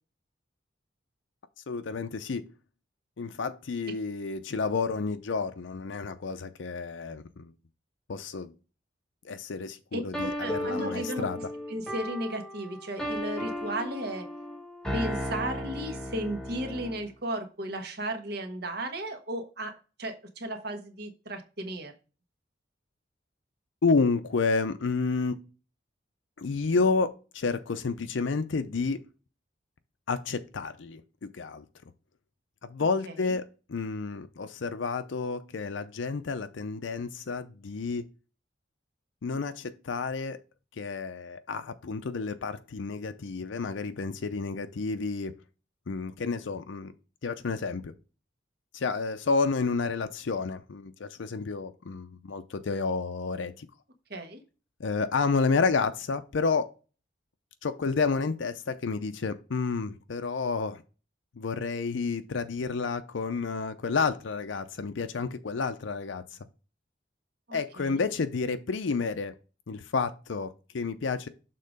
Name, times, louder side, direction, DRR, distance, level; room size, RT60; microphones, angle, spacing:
voice 1, 1.7-2.5 3.2-7.5 8.1-8.5 9.2-11.4 23.8-25.4 26.4-29.0 30.1-31.7 32.6-38.1 39.2-40.4 40.8-45.3 45.9-46.9 47.2-47.9 48.7-53.7 54.8-56.7 57.6-60.8 61.4-66.2 67.5-69.3 69.7-71.3, left 4 dB, 80° left, 0.5 m, -30 dB
voice 2, 9.9-11.3 11.7-14.3 14.9-21.9 33.1-33.3 54.1-54.4 67.5-68.0, right 1 dB, 55° right, 1.3 m, -35 dB
sound 1, 10.1-17.1, equal, 5° left, 1.1 m, -35 dB
6.6 x 3.7 x 5.1 m
head